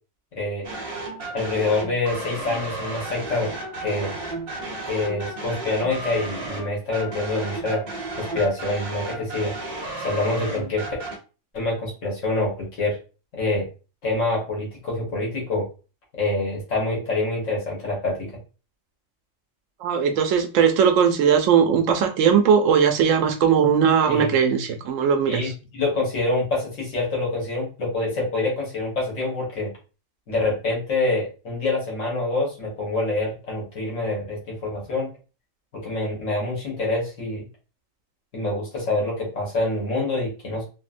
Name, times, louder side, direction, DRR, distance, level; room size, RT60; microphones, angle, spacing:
voice 1, 0.3-0.7 1.3-3.5 3.8-4.1 4.9-7.8 8.2-9.5 10.0-10.8 11.5-13.0 13.3-13.7 14.0-15.7 16.2-18.3 24.1-24.3 25.3-29.7 30.3-35.1 35.7-37.5 38.3-40.6, left 2 dB, 75° left, 1.6 m, -26 dB
sound 1, 0.6-11.2, right 2 dB, 50° right, 0.9 m, -33 dB
voice 2, 19.8-25.5, right 7 dB, 80° right, 0.9 m, -19 dB
3.7 x 2.0 x 2.5 m
omnidirectional pair, 1.3 m